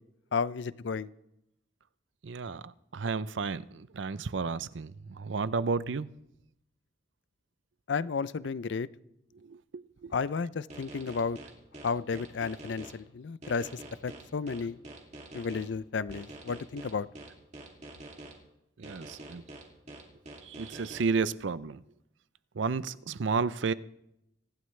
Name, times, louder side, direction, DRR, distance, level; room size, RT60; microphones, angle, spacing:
voice 1, 0.3-1.1 7.9-8.9 10.1-11.4 11.8-13.7 14.0-14.8 15.3-17.1, left 5 dB, 75° left, 0.5 m, -32 dB
voice 2, 2.2-6.1 9.4-10.1 18.8-19.4 20.4-21.8 22.6-23.7, right 4 dB, 80° right, 0.5 m, -32 dB
sound 1, 10.7-12.9 13.4-15.6 16.1-18.3 18.8-21.0, right 2 dB, 35° right, 2.5 m, -46 dB
27.0 x 11.0 x 3.3 m
head